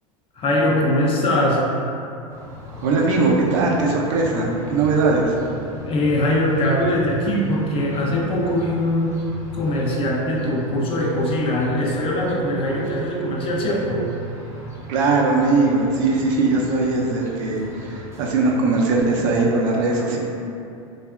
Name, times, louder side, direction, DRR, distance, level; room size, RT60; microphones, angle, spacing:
voice 1, 0.4-1.7 5.9-9.3 9.5-14.1, left 1 dB, 30° left, -2 dB, 0.4 m, -21 dB
sound 1, 2.3-19.4, equal, 15° right, 0.6 m, -37 dB
voice 2, 2.8-5.3 14.9-20.2, right 3 dB, 65° right, -2 dB, 0.5 m, -20 dB
2.7 x 2.3 x 2.2 m, 2.6 s
hypercardioid pair, 90°, 18 cm